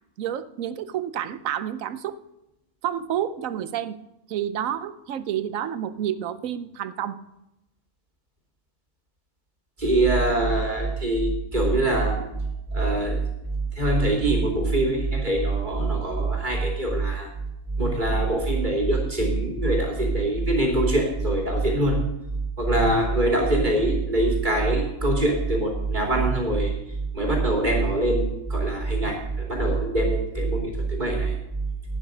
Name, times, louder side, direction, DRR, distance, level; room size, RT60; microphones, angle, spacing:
voice 1, 0.2-2.2 2.8-3.9 4.3-7.2, right 10 dB, 80° right, 14 dB, 1.1 m, -29 dB
voice 2, 9.8-12.2 12.7-13.2 13.7-17.3 17.8-22.0 22.6-26.7 27.1-31.3, right 2 dB, 35° right, -1 dB, 3.0 m, -23 dB
11.5 x 9.4 x 5.0 m, 0.90 s
omnidirectional pair, 1.4 m